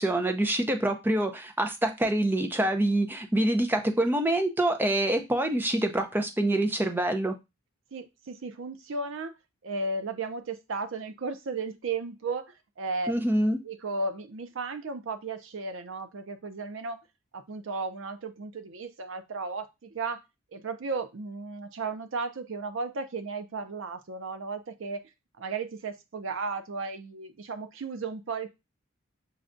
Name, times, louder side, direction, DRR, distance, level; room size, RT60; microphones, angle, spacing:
voice 1, 0.0-7.3 13.1-13.6, right 1 dB, 10° right, 0.5 m, -26 dB
voice 2, 7.9-9.3 9.6-13.1 13.6-17.1 17.3-20.2 20.5-25.0 25.4-28.5, right 3 dB, 70° right, 0.5 m, -34 dB
6.4 x 2.3 x 2.5 m
head